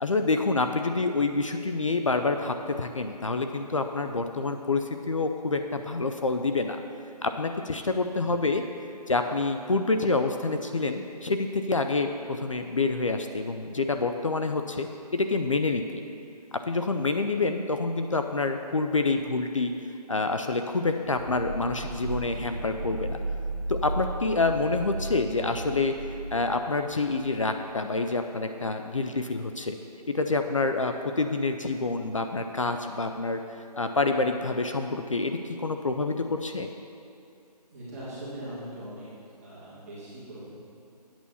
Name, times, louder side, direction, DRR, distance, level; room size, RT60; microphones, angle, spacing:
voice 1, 0.0-6.8 7.2-8.6 9.1-16.0 16.5-19.7 20.1-23.2 23.7-26.0 26.3-29.8 30.1-33.4 33.8-36.7, left 3 dB, 50° left, 6 dB, 0.5 m, -27 dB
voice 2, 8.2-8.5 37.7-39.1 39.4-40.5, right 1 dB, 20° right, -11 dB, 2.2 m, -41 dB
sound 1, 21.0-27.8, right 2 dB, 45° right, 1.4 m, -35 dB
8.7 x 7.1 x 5.5 m, 2.5 s
figure-of-eight pair, 175°, 21 cm